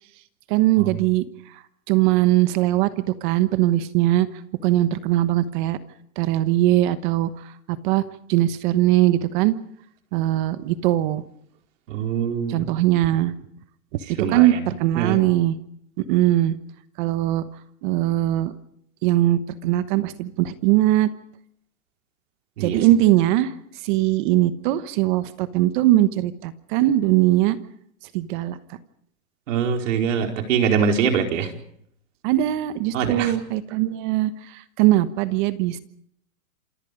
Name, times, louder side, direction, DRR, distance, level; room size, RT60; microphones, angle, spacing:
voice 1, 0.5-1.2 1.9-2.9 3.2-4.3 4.6-5.8 6.2-7.3 7.8-8.0 8.3-9.5 10.1-11.2 12.5-13.3 14.3-15.5 16.1-16.5 17.0-17.4 17.8-18.5 19.0-21.1 22.6-23.5 23.8-27.6 28.1-28.6 32.2-35.8, right 14 dB, 35° right, 13 dB, 1.2 m, -20 dB
voice 2, 11.9-12.6 14.2-14.7 15.0-15.2 22.6-22.8 29.5-31.5 32.9-33.3, right 7 dB, 65° right, 3 dB, 4.6 m, -23 dB
27.5 x 24.5 x 5.2 m, 0.70 s
supercardioid pair, 160°, 41 cm